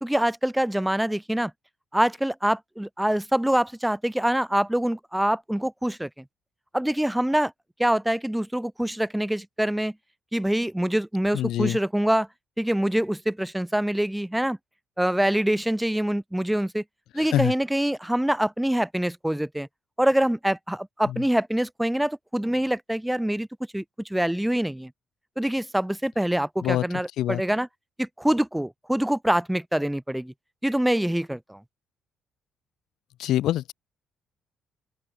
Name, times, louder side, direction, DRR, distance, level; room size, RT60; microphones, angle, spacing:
voice 1, 0.0-1.5 1.9-6.1 6.7-7.5 7.8-9.9 10.3-12.3 12.6-14.6 15.0-16.8 17.1-19.7 20.0-23.5 23.7-23.8 24.1-24.9 25.4-27.7 28.0-30.3 30.6-31.6, right 1 dB, 5° right, 2.4 m, -25 dB
voice 2, 11.3-11.8 17.2-17.5 21.1-21.2 26.6-26.8 27.2-27.4 33.2-33.7, left 13 dB, 80° left, 2.4 m, -25 dB
open air
cardioid pair, 90°, 0 cm